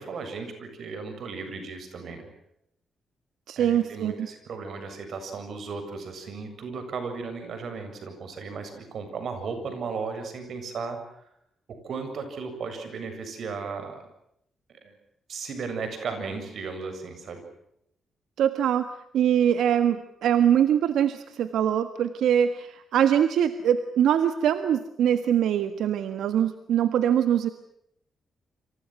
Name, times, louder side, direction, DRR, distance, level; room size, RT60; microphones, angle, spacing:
voice 1, 0.0-2.3 3.6-11.0 11.7-14.1 14.7-15.0 15.3-17.4, right 4 dB, 55° right, 8 dB, 7.5 m, -35 dB
voice 2, 3.5-4.3 18.4-18.9 19.1-27.5, right 9 dB, 85° right, 10 dB, 1.6 m, -23 dB
28.5 x 27.0 x 6.1 m, 0.76 s
cardioid pair, 150°, 0 cm